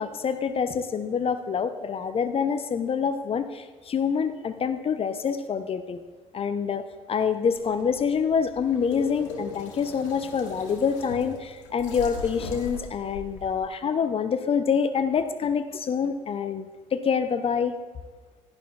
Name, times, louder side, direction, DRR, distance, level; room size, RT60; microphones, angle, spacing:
voice 1, 0.0-6.0 6.3-16.7 16.9-17.7, left 6 dB, 35° left, 10 dB, 0.7 m, -26 dB
sound 1, 7.5-13.6, left 3 dB, 75° left, 1.8 m, -40 dB
17.0 x 11.5 x 2.4 m, 1.3 s
hypercardioid pair, 55°, 16 cm